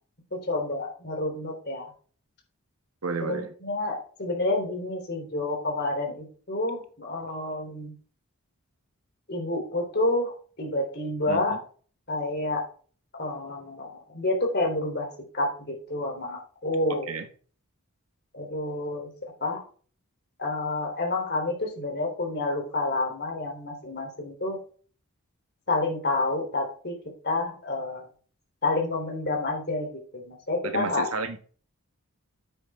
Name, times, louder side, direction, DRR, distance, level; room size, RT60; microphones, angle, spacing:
voice 1, 0.3-1.9 3.2-7.9 9.3-11.6 12.1-12.6 13.1-17.1 18.3-19.1 19.4-19.6 20.4-24.6 25.7-27.0 27.2-28.1 28.6-31.1, left 2 dB, 50° left, 3.4 m, -29 dB
voice 2, 3.0-3.5 11.3-11.6 17.1-17.3 30.6-31.4, right 4 dB, 80° right, 1.3 m, -32 dB
9.6 x 8.0 x 3.6 m
head